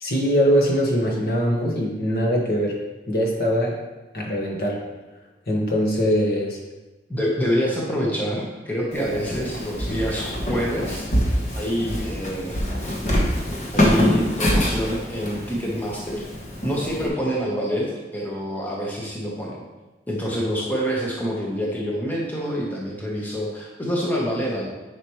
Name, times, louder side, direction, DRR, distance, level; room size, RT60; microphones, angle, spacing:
voice 1, 0.0-2.8 3.1-3.8 4.1-4.8 5.5-6.6, equal, 55° left, -2 dB, 1.4 m, -22 dB
voice 2, 7.1-11.1 11.5-12.6 13.7-16.3 16.6-17.9 18.1-19.6 20.1-24.7, equal, 10° left, -4 dB, 1.1 m, -26 dB
Walk footsteps, 8.9-17.1, left 1 dB, 40° left, 1.2 m, -25 dB
9.8 x 5.1 x 3.1 m, 1.1 s
head